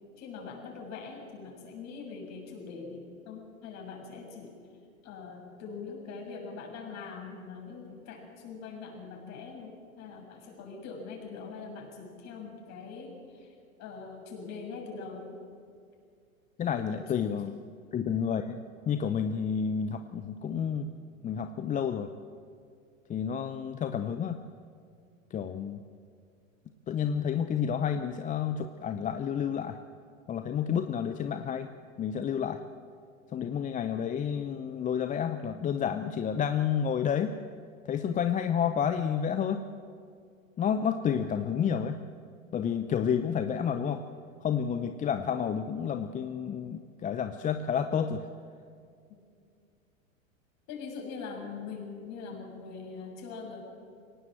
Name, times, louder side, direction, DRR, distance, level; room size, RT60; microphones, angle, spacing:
voice 1, 0.2-4.5 5.0-13.5 13.8-15.4 16.9-17.0 50.7-53.6, left 5 dB, 40° left, 0 dB, 7.2 m, -42 dB
voice 2, 16.6-17.5 17.9-20.9 21.2-22.1 23.1-24.4 25.3-25.8 26.9-29.8 30.3-31.7 32.0-32.6 33.3-37.4 37.9-39.7 40.6-42.0 42.5-44.0 44.4-48.3, left 7 dB, 20° left, 9 dB, 0.7 m, -30 dB
23.0 x 18.0 x 7.8 m, 2.3 s
hypercardioid pair, 100°, 41 cm